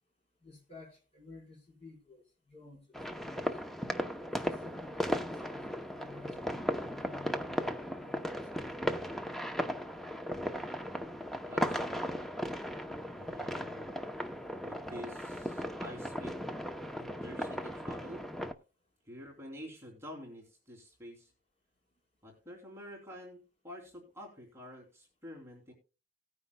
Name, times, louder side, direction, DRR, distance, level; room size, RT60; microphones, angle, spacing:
voice 1, 0.4-3.6 4.3-9.1, left 3 dB, 30° left, 4.5 m, -53 dB
sound 1, 2.9-18.5, equal, ahead, 0.7 m, -36 dB
voice 2, 11.5-12.1 13.2-13.9 14.6-16.4 17.0-18.2 19.0-21.3 22.2-25.7, left 1 dB, 15° right, 2.9 m, -48 dB
18.0 x 9.6 x 2.2 m
head